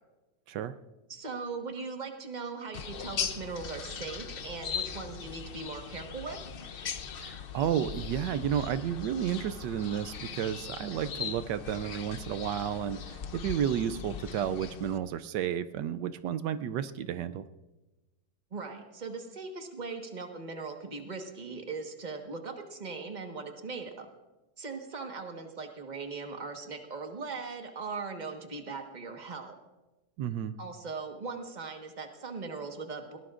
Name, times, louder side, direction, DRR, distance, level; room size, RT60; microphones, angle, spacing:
voice 1, 1.1-6.4 18.5-24.1 24.6-29.5 30.6-33.2, right 4 dB, 25° right, 3 dB, 1.4 m, -39 dB
sound 1, 2.7-15.0, left 7 dB, 60° left, 0.5 m, -39 dB
voice 2, 7.2-17.5 30.2-30.6, right 9 dB, 85° right, 12 dB, 1.2 m, -32 dB
21.0 x 18.5 x 2.5 m, 1.1 s
omnidirectional pair, 1.8 m